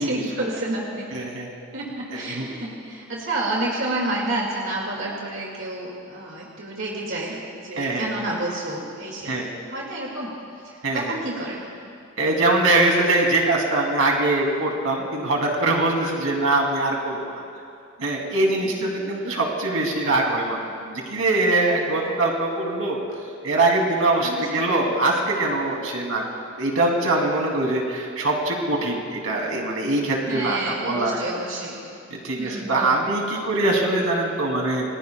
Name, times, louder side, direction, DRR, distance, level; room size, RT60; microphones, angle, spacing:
voice 1, 0.0-1.1 1.7-9.4 9.7-10.3 10.6-11.9 18.8-19.1 24.2-24.5 30.3-31.8 32.4-33.0, right 2 dB, 60° right, -3 dB, 2.2 m, -30 dB
voice 2, 1.1-1.5 2.1-2.5 7.8-8.2 9.2-9.5 10.8-11.2 12.2-17.4 18.0-23.0 23.4-26.2 26.6-31.2 32.1-34.8, right 2 dB, 80° right, 0 dB, 2.8 m, -23 dB
29.0 x 20.5 x 2.3 m, 2.6 s
head